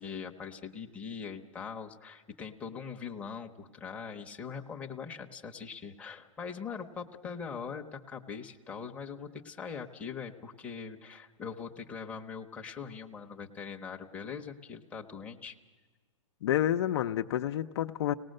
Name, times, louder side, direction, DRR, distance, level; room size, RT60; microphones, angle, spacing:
voice 1, 0.0-15.6, left 6 dB, 10° left, 1 dB, 0.9 m, -42 dB
voice 2, 16.4-18.1, left 11 dB, 55° left, 7 dB, 0.6 m, -29 dB
25.5 x 18.5 x 6.5 m, 1.4 s
hypercardioid pair, 150°, 17 cm